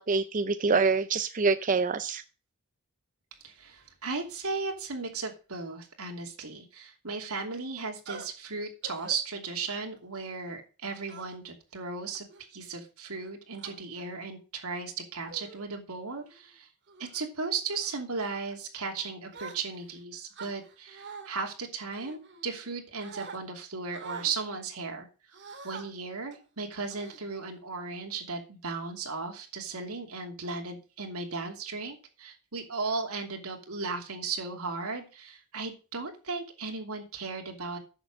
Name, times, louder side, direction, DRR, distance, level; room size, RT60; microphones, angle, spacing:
voice 1, 0.0-2.2, right 4 dB, 35° right, 11 dB, 0.5 m, -26 dB
voice 2, 3.4-12.3 12.5-16.7 17.0-25.4 25.6-37.8, right 4 dB, 85° right, 3 dB, 2.8 m, -36 dB
sound 1, 8.1-8.3 8.8-9.2 9.7-10.0 11.1-11.5 12.1-12.4 13.2-13.7 14.6-14.8 15.3-15.6 16.1-16.4 16.9-17.2 17.7-18.0 19.3-19.9 20.3-21.3 21.9-22.7 23.0-23.4 23.9-24.3 25.3-25.8 26.3-26.5 26.9-27.6, right 5 dB, 55° right, 2.2 m, -45 dB
10.0 x 7.0 x 6.6 m, 0.34 s
head